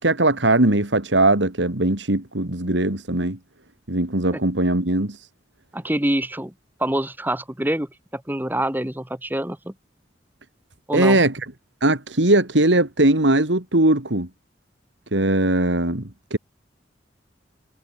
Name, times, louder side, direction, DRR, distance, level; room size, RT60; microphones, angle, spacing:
voice 1, 0.0-3.4 3.9-5.2 10.9-11.4 11.8-14.3 15.1-16.4, right 2 dB, 90° right, 3.1 m, -20 dB
voice 2, 5.7-6.5 6.8-9.7 10.9-11.2, right 1 dB, 10° right, 2.4 m, -26 dB
head